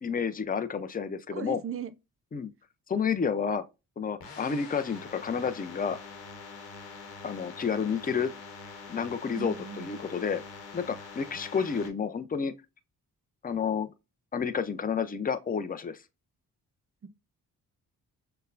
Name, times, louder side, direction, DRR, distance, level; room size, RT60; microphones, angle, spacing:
voice 1, 0.0-1.6 2.3-2.5 2.9-3.6 4.0-6.0 7.2-8.3 8.9-10.4 10.7-12.5 13.4-13.9 14.3-16.0, left 6 dB, 20° left, 0.5 m, -30 dB
voice 2, 1.3-1.9 9.4-9.9 17.0-17.1, right 7 dB, 35° right, 0.5 m, -37 dB
sound 1, 4.2-11.9, left 4 dB, 85° left, 1.1 m, -45 dB
6.3 x 2.2 x 2.5 m
supercardioid pair, 50°, 41 cm